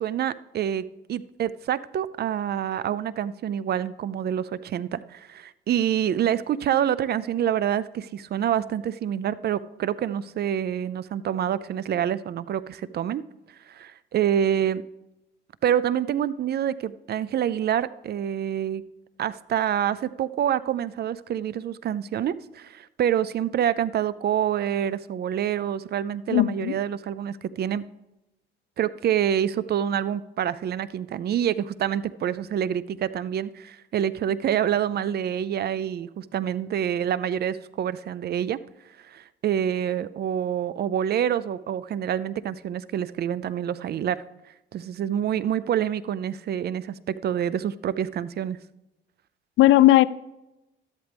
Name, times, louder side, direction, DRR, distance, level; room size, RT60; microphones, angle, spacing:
voice 1, 0.0-13.2 13.7-14.8 15.6-18.8 19.2-27.9 28.8-38.6 39.1-44.2 44.7-48.6, right 9 dB, 55° right, 0.5 m, -27 dB
voice 2, 26.3-26.8 49.6-50.1, left 15 dB, 80° left, 0.4 m, -16 dB
12.5 x 11.0 x 3.4 m
cardioid pair, 90°, 20 cm